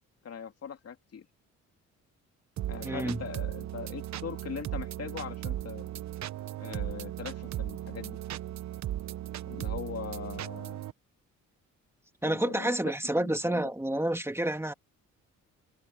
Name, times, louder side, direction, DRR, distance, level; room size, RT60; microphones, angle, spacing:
voice 1, 0.2-1.3 2.7-5.9 6.6-8.2 9.5-10.8 12.2-13.7, left 7 dB, 55° left, 2.8 m, -41 dB
sound 1, 2.6-10.9, right 12 dB, 65° right, 1.1 m, -37 dB
voice 2, 2.8-3.2 12.2-14.7, right 1 dB, 10° right, 2.7 m, -29 dB
cardioid pair, 90°, 30 cm